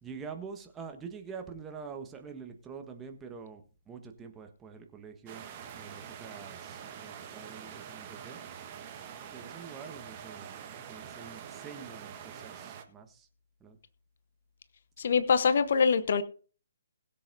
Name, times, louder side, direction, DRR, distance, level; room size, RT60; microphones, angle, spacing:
voice 1, 0.0-3.6 3.9-5.4 5.8-8.4 9.3-10.5 10.9-12.5 12.9-13.1 13.6-13.7, right 6 dB, 15° right, 1.4 m, -45 dB
sound 1, 5.3-12.8, right 8 dB, 30° right, 1.5 m, -45 dB
voice 2, 15.0-16.2, left 5 dB, 55° left, 0.8 m, -24 dB
21.0 x 7.6 x 2.7 m
figure-of-eight pair, 135°, 0 cm